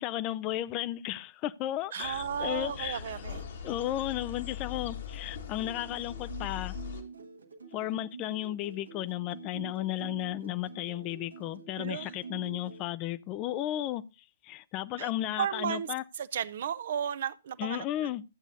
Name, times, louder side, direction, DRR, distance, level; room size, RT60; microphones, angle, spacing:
voice 1, 0.0-3.0 3.6-6.7 7.7-14.0 14.4-16.0 17.6-18.2, left 13 dB, 30° left, 0.4 m, -34 dB
voice 2, 1.9-3.4 11.8-12.1 15.0-15.1 15.4-15.9 16.2-18.1, right 9 dB, 60° right, 0.5 m, -34 dB
sound 1, 2.0-7.0, left 8 dB, 60° left, 1.6 m, -41 dB
sound 2, 5.5-12.9, right 5 dB, 80° right, 1.2 m, -46 dB
14.5 x 8.0 x 2.7 m
figure-of-eight pair, 115°, 0 cm